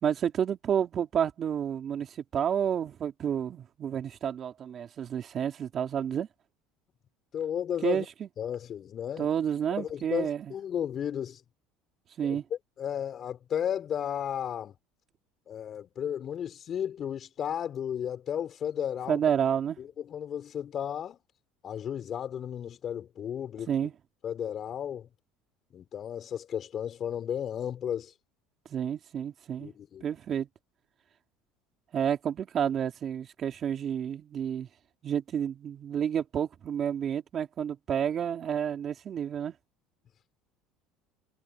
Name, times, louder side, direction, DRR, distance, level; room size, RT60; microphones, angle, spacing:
voice 1, 0.0-6.3 7.8-8.3 9.2-10.5 12.2-12.4 19.1-19.8 23.7-23.9 28.7-29.7 30.0-30.5 31.9-34.7 35.0-39.5, right 8 dB, 40° right, 3.2 m, -30 dB
voice 2, 7.3-8.1 8.4-9.3 9.8-11.4 12.2-12.4 12.8-14.7 15.5-19.2 19.8-21.2 21.6-23.7 24.2-25.1 25.7-28.1 29.6-30.1, left 9 dB, 40° left, 5.3 m, -34 dB
supercardioid pair, 115°, 0 cm